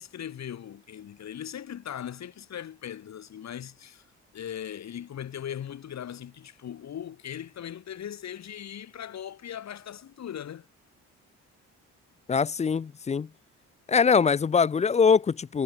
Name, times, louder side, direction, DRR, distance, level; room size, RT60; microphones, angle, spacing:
voice 1, 0.0-4.0 4.3-10.7, left 9 dB, 60° left, 5.4 m, -39 dB
voice 2, 12.3-13.3 13.9-15.6, left 6 dB, 25° left, 0.4 m, -22 dB
cardioid pair, 90°, 30 cm